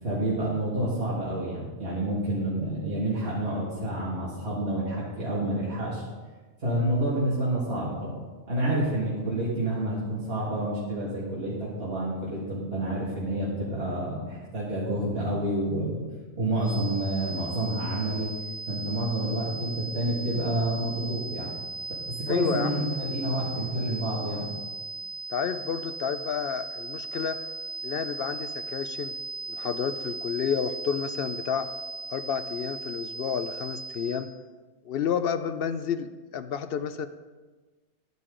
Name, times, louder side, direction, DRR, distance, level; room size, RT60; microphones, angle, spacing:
voice 1, 0.0-6.0 6.6-8.2 8.5-16.0 16.4-18.3 18.7-21.5 22.1-24.5, right 1 dB, 60° right, -8 dB, 2.3 m, -29 dB
sound 1, 16.6-34.4, right 3 dB, 85° left, 1.7 m, -38 dB
voice 2, 22.3-22.9 25.3-27.4 27.8-29.1 29.5-31.7 32.1-34.3 34.8-37.1, left 7 dB, 65° left, 10 dB, 0.7 m, -30 dB
11.5 x 9.3 x 3.8 m, 1.3 s
omnidirectional pair, 1.2 m